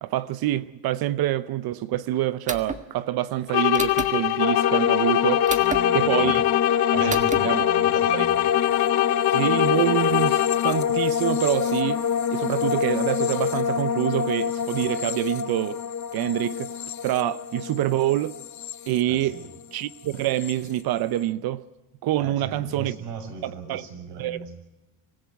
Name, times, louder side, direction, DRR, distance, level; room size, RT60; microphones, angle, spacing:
voice 1, 0.0-5.5 5.9-6.4 6.9-7.6 8.1-8.3 9.3-12.0 12.3-15.8 16.1-16.7 17.0-18.3 18.9-19.4 19.7-21.6 22.0-23.0 23.4-23.8 24.2-24.4, right 14 dB, 55° right, 0.8 m, -26 dB
sound 1, 2.5-2.8 3.7-4.1 5.5-5.8 7.1-7.4, right 4 dB, 15° right, 1.6 m, -30 dB
sound 2, 3.5-11.0, left 17 dB, 65° left, 1.0 m, -24 dB
sound 3, 4.4-19.6 19.9-20.5, left 7 dB, 40° left, 1.1 m, -26 dB
voice 2, 5.5-6.4 6.9-8.4 19.1-19.5 22.2-24.5, right 5 dB, 75° right, 6.5 m, -38 dB
25.5 x 15.5 x 9.2 m
cardioid pair, 135°, 42 cm